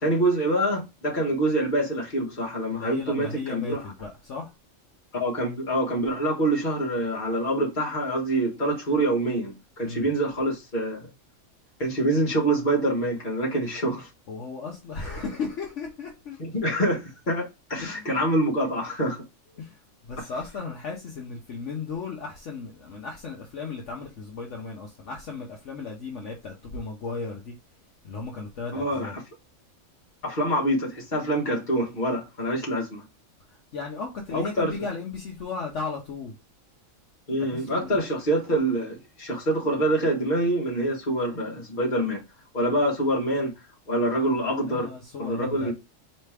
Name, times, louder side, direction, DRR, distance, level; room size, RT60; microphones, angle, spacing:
voice 1, 0.0-3.8 5.1-11.1 11.8-14.1 15.0-15.2 16.4-19.3 20.2-20.3 28.7-29.2 30.2-33.0 34.3-34.7 37.3-42.2 42.5-43.5 43.9-44.9 45.2-45.7, right 1 dB, 35° left, 1.6 m, -26 dB
voice 2, 2.7-4.5 9.8-10.1 14.3-16.4 17.8-18.3 19.6-27.5 28.0-29.1 33.7-36.4 37.4-38.0 44.7-45.7, left 4 dB, 65° left, 1.2 m, -35 dB
4.3 x 3.3 x 3.3 m
omnidirectional pair, 1.4 m